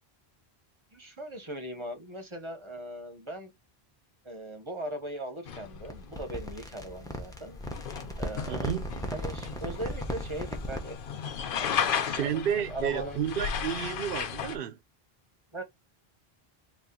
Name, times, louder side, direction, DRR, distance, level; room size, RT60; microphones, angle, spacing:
voice 1, 0.9-3.5 4.2-7.6 8.2-8.7 9.1-11.0 11.5-12.4 12.7-13.2 15.5-15.6, right 1 dB, 30° right, 0.8 m, -39 dB
sound 1, 5.5-14.6, left 7 dB, 65° left, 0.7 m, -35 dB
sound 2, 5.9-11.0, equal, 5° left, 0.6 m, -37 dB
voice 2, 8.5-8.9 12.1-14.8, right 9 dB, 65° right, 0.7 m, -31 dB
4.2 x 2.3 x 3.6 m
omnidirectional pair, 1.1 m